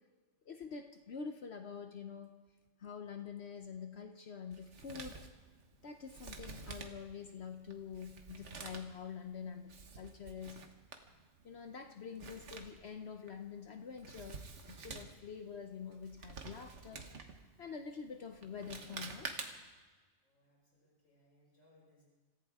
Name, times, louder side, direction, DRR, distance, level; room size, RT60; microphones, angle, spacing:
voice 1, 0.5-2.3 2.8-5.2 5.8-10.6 11.4-14.4 14.7-17.1 17.6-19.3, left 6 dB, 60° left, 6 dB, 1.0 m, -46 dB
Male speech man speaking, 4.5-19.8, right 4 dB, 65° right, 1.5 m, -50 dB
voice 2, 20.2-22.0, left 1 dB, 80° left, -5 dB, 6.6 m, -69 dB
26.0 x 15.0 x 3.6 m, 1.3 s
omnidirectional pair, 1.3 m